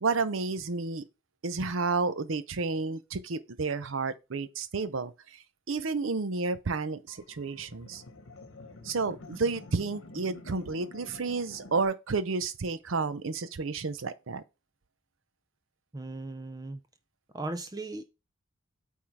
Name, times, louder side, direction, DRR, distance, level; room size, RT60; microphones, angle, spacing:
voice 1, 0.0-1.0 1.4-8.0 8.8-14.4, right 4 dB, 75° right, 0.6 m, -31 dB
sound 1, 7.1-11.9, left 2 dB, 75° left, 1.1 m, -48 dB
voice 2, 15.9-16.8 17.3-18.0, right 2 dB, 20° right, 0.5 m, -37 dB
8.7 x 3.7 x 4.6 m
head